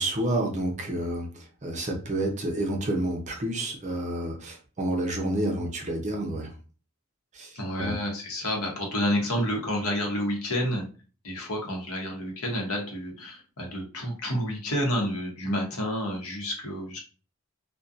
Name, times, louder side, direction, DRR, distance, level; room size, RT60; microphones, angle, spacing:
voice 1, 0.0-6.5 7.3-7.5 7.8-8.0, right 1 dB, 30° right, 2 dB, 0.6 m, -29 dB
voice 2, 7.6-10.9 11.2-17.0, equal, 75° left, 0 dB, 0.9 m, -29 dB
2.6 x 2.2 x 2.4 m, 0.36 s
head